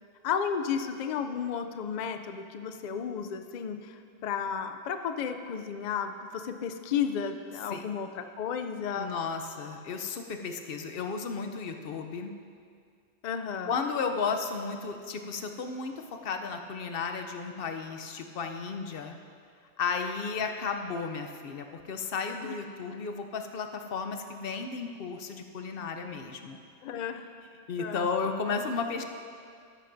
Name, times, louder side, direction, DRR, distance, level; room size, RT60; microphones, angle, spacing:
voice 1, 0.2-9.2 13.2-13.7 22.4-22.5 26.8-27.3 27.8-28.1, left 7 dB, 85° left, 7 dB, 0.4 m, -33 dB
voice 2, 9.0-12.3 13.7-19.2 19.8-26.6 27.7-29.0, left 5 dB, 55° left, 5 dB, 0.8 m, -34 dB
13.5 x 9.9 x 2.6 m, 2.2 s
omnidirectional pair, 1.3 m